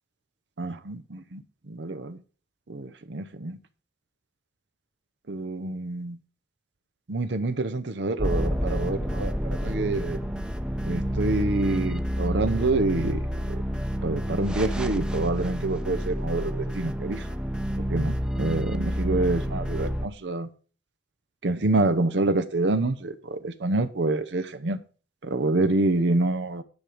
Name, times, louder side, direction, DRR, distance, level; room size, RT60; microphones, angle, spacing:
voice 1, 0.6-1.4 1.7-2.2 2.7-3.6 5.3-6.2 7.1-10.2 10.8-13.2 13.5-13.6 14.0-17.2 17.9-20.5 21.4-24.8 25.2-26.6, right 2 dB, 75° right, 0.8 m, -27 dB
sound 1, 8.2-20.1, equal, 5° right, 0.7 m, -29 dB
9.7 x 5.0 x 7.6 m
head